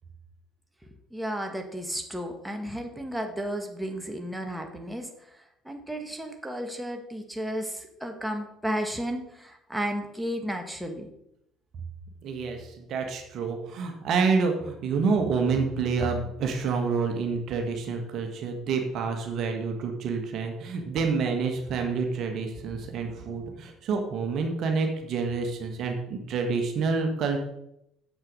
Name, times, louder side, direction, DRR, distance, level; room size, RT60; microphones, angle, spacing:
voice 1, 1.1-5.1 5.6-11.1, equal, 5° right, 3 dB, 1.6 m, -33 dB
voice 2, 12.2-27.4, right 4 dB, 55° right, 4 dB, 1.5 m, -28 dB
7.5 x 6.3 x 5.3 m, 0.79 s
hypercardioid pair, 60°, 0 cm